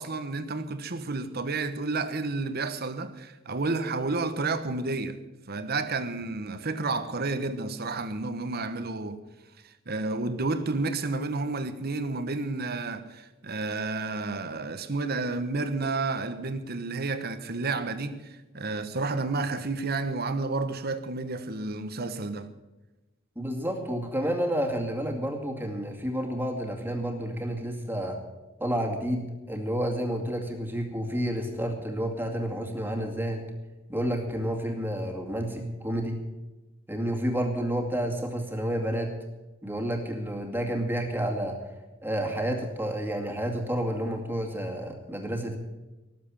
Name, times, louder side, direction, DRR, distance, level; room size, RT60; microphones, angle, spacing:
voice 1, 0.0-5.2 5.5-9.2 9.9-18.3 18.5-22.5, right 3 dB, 50° right, 1.2 m, -31 dB
voice 2, 23.4-28.2 28.6-33.5 33.9-36.2 36.9-39.1 39.6-41.6 42.0-45.6, equal, 10° right, 2.3 m, -30 dB
19.0 x 7.6 x 8.8 m
head